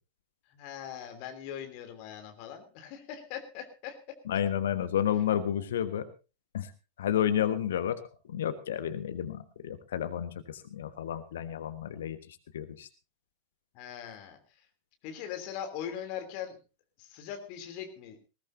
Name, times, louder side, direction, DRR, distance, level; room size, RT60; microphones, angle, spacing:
voice 1, 0.5-4.0 13.7-14.7 15.0-16.6 17.0-18.2, left 9 dB, 45° left, 6 dB, 3.1 m, -41 dB
voice 2, 4.3-6.1 6.5-6.7 7.0-8.0 8.3-12.9, left 10 dB, 60° left, 10 dB, 1.3 m, -31 dB
20.0 x 18.0 x 2.7 m, 0.32 s
figure-of-eight pair, 90°, 0 cm